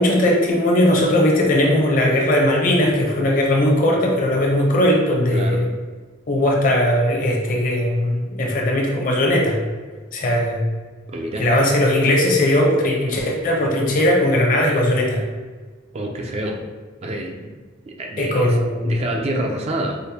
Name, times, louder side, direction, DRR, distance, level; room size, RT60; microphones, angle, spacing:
voice 1, 0.0-5.7 6.3-9.6 10.1-10.6 11.4-15.2 18.2-18.9, left 1 dB, 45° left, -1 dB, 0.6 m, -18 dB
voice 2, 5.3-5.7 11.1-11.5 15.9-16.6 17.0-17.5 17.9-18.6 18.8-20.0, right 1 dB, 30° right, 2 dB, 0.3 m, -27 dB
5.0 x 2.0 x 2.8 m, 1.4 s
head